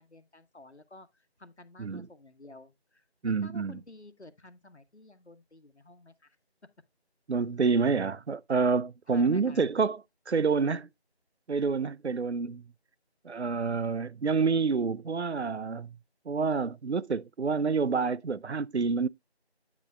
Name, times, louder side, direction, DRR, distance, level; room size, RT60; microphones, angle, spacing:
voice 1, 0.0-6.4 9.1-9.7, left 2 dB, 85° left, 1.3 m, -52 dB
voice 2, 3.2-3.8 7.3-10.0 10.3-10.9 11.5-12.6 13.2-16.0 16.3-19.1, right 5 dB, 80° right, 0.6 m, -28 dB
9.1 x 8.4 x 2.3 m
figure-of-eight pair, 180°, 33 cm